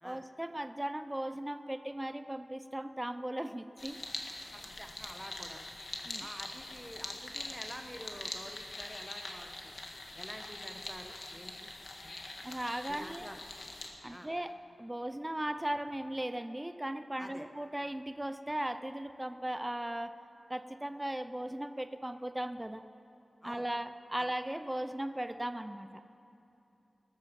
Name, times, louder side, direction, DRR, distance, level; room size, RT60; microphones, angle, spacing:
voice 1, 0.0-4.0 6.0-6.3 12.4-13.3 14.0-20.2 20.5-22.8 23.4-26.0, right 1 dB, 15° right, 10 dB, 0.5 m, -37 dB
sound 1, 3.8-13.9, left 2 dB, 55° left, 1.7 m, -44 dB
voice 2, 4.5-5.7 6.2-9.7 10.2-11.7 12.0-12.2 12.9-13.4 14.1-14.3 17.2-17.5 23.4-23.7, equal, 5° left, 5 dB, 1.2 m, -48 dB
20.0 x 13.0 x 5.3 m, 2.8 s
wide cardioid pair, 95°, 0 cm